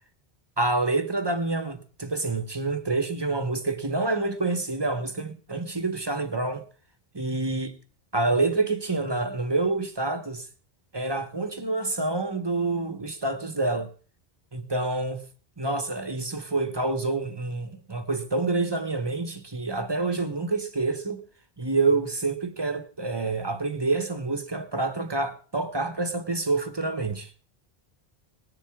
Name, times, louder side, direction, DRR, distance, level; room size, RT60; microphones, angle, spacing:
voice 1, 0.6-6.6 7.1-7.7 8.1-10.5 10.9-13.9 14.5-15.2 15.6-21.2 21.6-27.3, right 3 dB, 25° right, 1.2 m, -27 dB
19.5 x 10.5 x 3.6 m
omnidirectional pair, 1.1 m